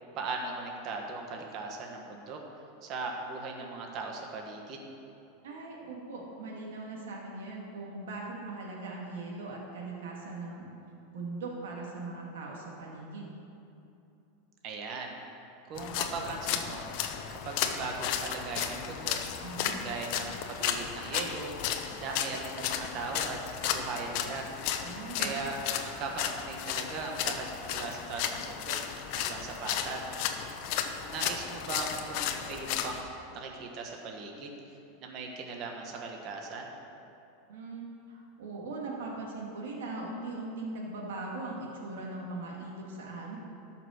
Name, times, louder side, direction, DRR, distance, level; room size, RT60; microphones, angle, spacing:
voice 1, 0.1-2.4 2.8-4.9 14.6-15.2 15.7-16.9 17.3-19.2 19.8-21.5 22.0-24.5 25.2-25.6 25.8-28.8 29.1-30.1 31.0-34.6 35.0-36.7, right 4 dB, 40° right, 1 dB, 1.4 m, -38 dB
voice 2, 5.4-10.7 11.1-13.3 19.4-19.8 24.8-25.4 37.5-37.8 38.1-43.4, right 3 dB, 85° right, -2 dB, 2.2 m, -40 dB
sound 1, 15.8-33.0, left 9 dB, 55° left, 0.8 m, -34 dB
13.5 x 6.0 x 6.5 m, 2.8 s
supercardioid pair, 150°, 0 cm